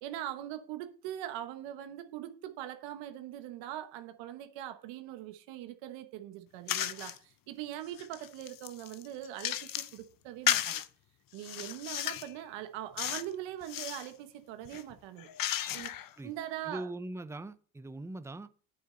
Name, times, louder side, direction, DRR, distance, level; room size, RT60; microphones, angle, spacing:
voice 1, 0.0-10.8 11.3-15.3 15.7-16.9, right 12 dB, 85° right, 1.2 m, -42 dB
sound 1, 6.7-7.2 7.7-10.0 10.5-10.9 11.4-12.3 13.0-13.3 13.6-14.1 14.6-16.1, left 12 dB, 50° left, 0.8 m, -34 dB
voice 2, 16.7-18.5, right 2 dB, 5° right, 0.6 m, -41 dB
8.9 x 8.4 x 3.8 m
cardioid pair, 100°, 43 cm